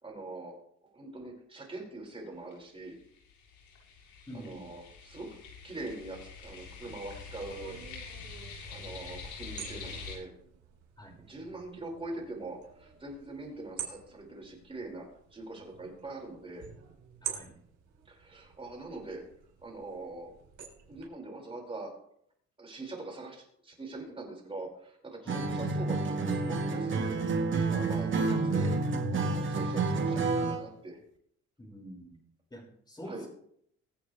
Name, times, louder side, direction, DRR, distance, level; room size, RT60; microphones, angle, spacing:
voice 1, 0.0-0.6 0.8-3.0 4.3-5.3 5.6-7.8 8.2-8.3 8.7-10.3 11.2-16.7 18.1-19.3 19.6-20.4 20.9-22.0 22.6-27.2 27.7-28.8 29.1-31.0 33.0-33.3, right 2 dB, 20° right, -1 dB, 5.6 m, -43 dB
sound 1, 2.1-2.2 2.5-2.6 2.9-10.1, left 5 dB, 85° left, 7.4 m, -45 dB
voice 2, 4.3-4.7 11.0-11.2 17.2-17.6 25.2-25.5 31.6-32.2 32.5-33.3, equal, 15° left, -1 dB, 5.8 m, -46 dB
sound 2, 6.4-21.0, right 9 dB, 80° right, 5.8 m, -48 dB
Acoustic guitar, 25.3-30.7, right 3 dB, 40° right, 1.9 m, -29 dB
24.5 x 8.7 x 3.4 m, 0.67 s
cardioid pair, 125°, 29 cm